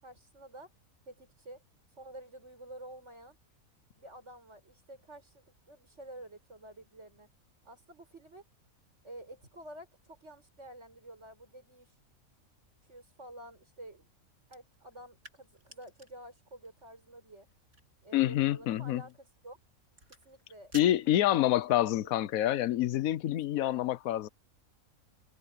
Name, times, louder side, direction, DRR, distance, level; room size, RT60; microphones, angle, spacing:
voice 1, 0.0-0.7 1.1-1.6 2.0-3.4 4.0-7.3 7.6-8.4 9.0-11.9 12.9-14.1 14.5-17.5 18.0-19.6 20.2-21.4 21.6-22.1 23.4-23.9, right 1 dB, 55° right, 7.7 m, -50 dB
sound 1, 14.5-21.8, right 2 dB, 80° right, 8.2 m, -57 dB
voice 2, 18.1-19.0 20.7-24.3, left 13 dB, 80° left, 1.1 m, -27 dB
omnidirectional pair, 1.5 m